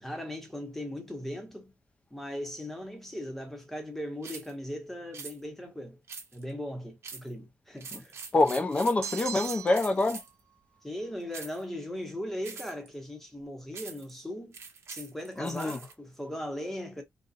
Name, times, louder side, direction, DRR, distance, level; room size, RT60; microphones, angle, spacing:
voice 1, 0.0-1.7 2.1-6.0 6.3-8.2 10.8-14.6 14.9-17.0, left 1 dB, 5° left, 0.9 m, -38 dB
sound 1, 4.2-4.5 5.1-5.4 6.1-6.5 7.0-7.3 7.8-10.4 11.3-11.6 12.4-12.9 13.7-14.1 14.5-15.9, right 5 dB, 60° right, 1.1 m, -44 dB
voice 2, 8.3-10.2 15.4-15.8, left 2 dB, 25° left, 0.6 m, -26 dB
sound 2, 9.0-10.0, right 8 dB, 80° right, 0.4 m, -38 dB
3.9 x 2.3 x 2.5 m
wide cardioid pair, 165°, 5 cm